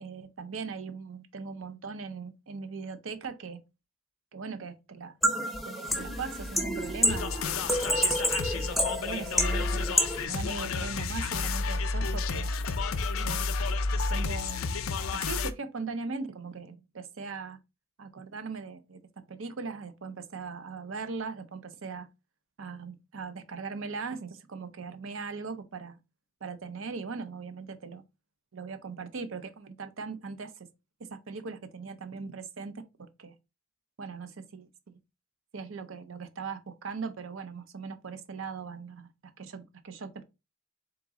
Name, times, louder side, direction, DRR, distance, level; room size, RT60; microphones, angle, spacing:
voice 1, 0.0-3.6 4.3-5.2 5.6-7.7 8.5-9.9 10.2-12.5 13.2-13.5 14.1-14.6 15.1-17.6 18.0-19.0 19.3-22.1 22.6-26.0 26.4-28.0 28.5-30.5 31.0-33.3 34.0-35.0 35.5-39.1 39.4-40.2, right 4 dB, 65° right, 0.6 m, -39 dB
sound 1, 5.2-10.3, equal, ahead, 0.6 m, -29 dB
sound 2, 7.1-15.5, left 4 dB, 75° left, 0.5 m, -31 dB
3.9 x 2.9 x 3.6 m
head